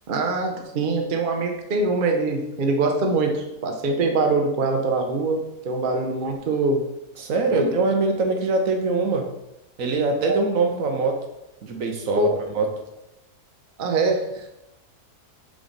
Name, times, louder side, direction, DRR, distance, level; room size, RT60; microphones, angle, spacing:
voice 1, 0.1-6.8 7.5-7.7 10.2-10.4 12.2-12.4 13.8-14.5, right 3 dB, 45° right, 2 dB, 0.7 m, -23 dB
voice 2, 7.2-9.2 9.8-11.2 11.6-12.3 12.5-12.7, right 3 dB, 60° right, 3 dB, 1.1 m, -23 dB
6.9 x 3.6 x 3.9 m, 0.90 s
omnidirectional pair, 1.7 m